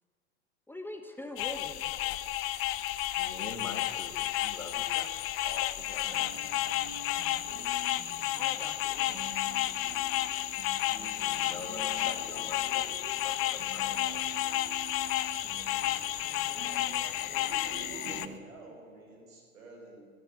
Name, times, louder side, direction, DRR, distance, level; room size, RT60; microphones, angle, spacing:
voice 1, 0.7-1.9 8.3-9.4 16.3-17.8, left 1 dB, 5° left, 5 dB, 0.9 m, -45 dB
sound 1, 1.4-18.3, left 15 dB, 30° left, 0.6 m, -32 dB
voice 2, 3.2-5.1 5.4-6.8 11.0-14.4, left 3 dB, 80° left, 6 dB, 2.0 m, -45 dB
sound 2, 6.0-18.4, right 7 dB, 25° right, 1.2 m, -48 dB
voice 3, 17.1-20.0, right 2 dB, 65° right, 1 dB, 4.8 m, -49 dB
14.5 x 10.5 x 8.0 m, 2.4 s
figure-of-eight pair, 90°, 42 cm